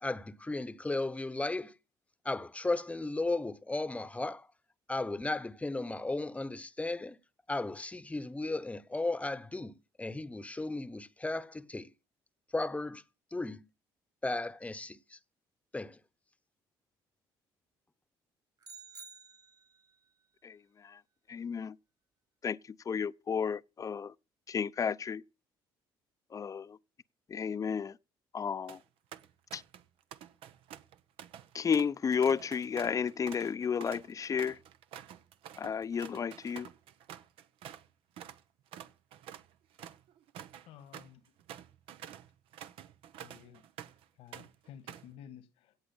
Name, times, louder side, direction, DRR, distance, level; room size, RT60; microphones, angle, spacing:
voice 1, 0.0-1.7 2.2-4.5 4.9-7.2 7.5-11.9 12.5-13.0 13.3-13.6 14.2-15.2 15.7-16.0, left 2 dB, 15° left, 0.9 m, -35 dB
sound 1, 18.6-19.9, right 5 dB, 50° right, 3.4 m, -51 dB
voice 2, 20.4-21.0 21.3-21.8 22.4-24.1 24.5-25.2 26.3-26.8 27.3-28.0 28.3-28.8 29.5-29.6 31.5-34.6 35.6-36.7, left 6 dB, 35° left, 0.6 m, -32 dB
sound 2, 28.5-28.8 29.1-29.8 30.1-37.9 38.2-38.4 38.7-44.0 44.3-45.1, right 10 dB, 75° right, 0.9 m, -49 dB
voice 3, 40.6-41.4 43.2-43.6 44.2-45.8, left 9 dB, 80° left, 1.6 m, -53 dB
17.0 x 6.4 x 7.1 m
supercardioid pair, 80°, 10 cm